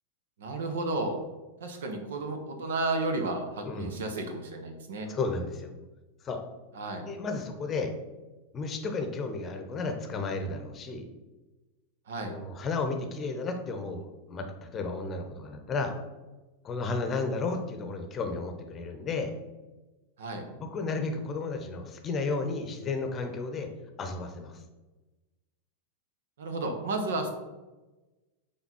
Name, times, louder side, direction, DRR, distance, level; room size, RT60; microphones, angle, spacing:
voice 1, 0.4-1.1 1.6-5.1 6.7-7.1 12.1-12.3 20.2-20.4 26.4-27.3, right 2 dB, 60° right, 5 dB, 1.0 m, -32 dB
voice 2, 3.6-4.0 5.1-5.7 6.2-6.4 7.1-7.9 8.5-11.0 12.2-15.9 16.6-19.3 20.5-23.7 24.0-24.6, left 3 dB, 25° left, 5 dB, 0.9 m, -33 dB
6.0 x 4.0 x 5.4 m, 1.2 s
figure-of-eight pair, 90°, 0 cm